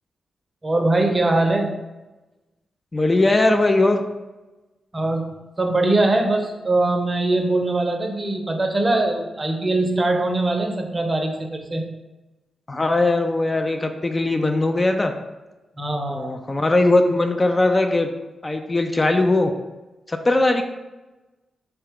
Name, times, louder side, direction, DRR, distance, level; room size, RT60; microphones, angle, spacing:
voice 1, 0.6-1.7 4.9-11.9 15.8-16.3, right 2 dB, 35° right, 4 dB, 0.6 m, -22 dB
voice 2, 2.9-4.0 12.7-15.1 16.1-18.1 18.4-19.5 20.1-20.6, left 2 dB, 30° left, 5 dB, 0.3 m, -19 dB
3.8 x 2.2 x 3.4 m, 1.1 s
supercardioid pair, 50°, 0 cm